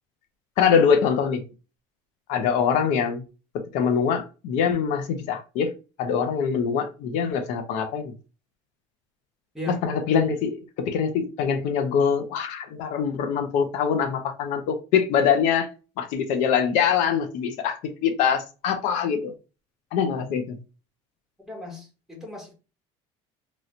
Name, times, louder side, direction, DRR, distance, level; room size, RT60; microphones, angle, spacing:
voice 1, 0.6-1.4 2.3-3.2 3.7-5.7 6.0-8.1 9.7-15.7 16.0-19.3 19.9-20.6, left 7 dB, 70° left, 0.6 m, -23 dB
voice 2, 9.5-10.3 21.4-22.5, left 1 dB, 5° right, 1.2 m, -37 dB
3.1 x 2.8 x 2.5 m
cardioid pair, 140°, 13 cm